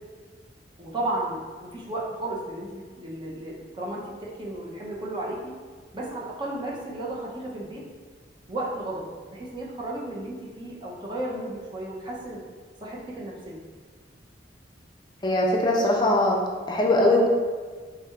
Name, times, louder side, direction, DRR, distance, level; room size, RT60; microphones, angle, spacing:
voice 1, 0.8-5.5 5.9-7.8 8.5-12.4 12.8-13.6, right 1 dB, 25° right, -4 dB, 0.7 m, -34 dB
voice 2, 15.2-16.4 16.7-17.3, left 1 dB, 25° left, -1 dB, 0.5 m, -21 dB
3.5 x 2.5 x 4.3 m, 1.5 s
head